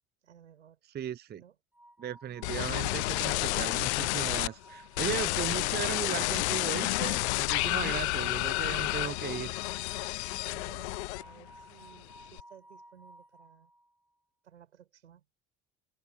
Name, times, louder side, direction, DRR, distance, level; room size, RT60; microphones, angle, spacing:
voice 1, 0.2-0.8 1.3-1.6 7.7-8.5 10.3-13.7 14.4-15.3, right 9 dB, 85° right, 7.3 m, -55 dB
voice 2, 0.9-1.4 2.0-9.5, right 9 dB, 30° right, 0.7 m, -37 dB
sound 1, 1.7-14.0, right 1 dB, 5° right, 6.6 m, -55 dB
sound 2, 2.4-4.5 5.0-11.5 11.8-12.4, left 23 dB, 75° left, 0.5 m, -30 dB
figure-of-eight pair, 60°, 34 cm